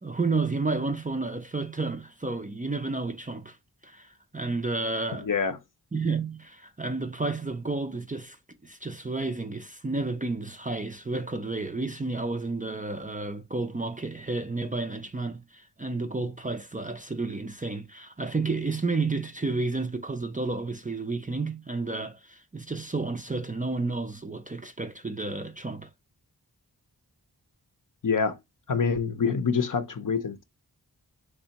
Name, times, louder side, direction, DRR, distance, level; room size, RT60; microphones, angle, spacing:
voice 1, 0.0-3.6 3.8-5.3 5.9-8.4 8.6-25.9, right 3 dB, 20° right, 0.4 m, -31 dB
voice 2, 5.2-5.6 28.0-28.4 28.7-30.4, left 5 dB, 50° left, 0.6 m, -26 dB
3.5 x 3.2 x 2.9 m
wide cardioid pair, 60°, 40 cm